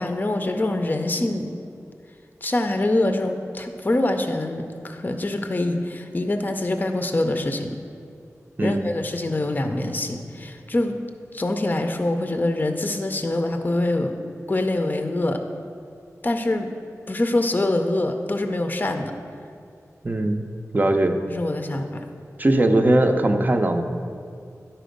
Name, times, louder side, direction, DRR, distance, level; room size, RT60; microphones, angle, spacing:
voice 1, 0.0-1.5 2.4-7.7 8.6-10.9 11.3-14.1 14.5-15.4 16.2-16.7 17.1-19.1 21.3-22.0, left 2 dB, 30° left, 6 dB, 0.5 m, -24 dB
voice 2, 20.0-20.4 20.7-21.2 22.4-23.8, right 1 dB, 35° right, 5 dB, 0.6 m, -19 dB
10.0 x 4.2 x 5.2 m, 2.4 s
wide cardioid pair, 70°, 6 cm